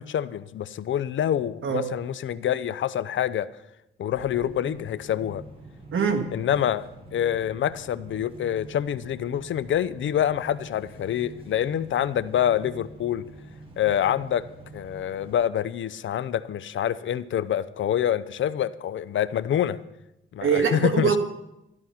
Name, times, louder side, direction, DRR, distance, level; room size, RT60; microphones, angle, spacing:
voice 1, 0.0-3.5 4.0-5.4 6.3-13.3 13.8-14.5 14.7-19.8 20.3-21.2, left 10 dB, 65° left, 16 dB, 0.6 m, -26 dB
sound 1, 4.1-15.3, right 2 dB, 25° right, 4.7 m, -46 dB
voice 2, 5.9-6.3 20.4-21.2, right 6 dB, 75° right, 6 dB, 1.7 m, -23 dB
13.0 x 13.0 x 5.8 m, 0.89 s
cardioid pair, 120°, 21 cm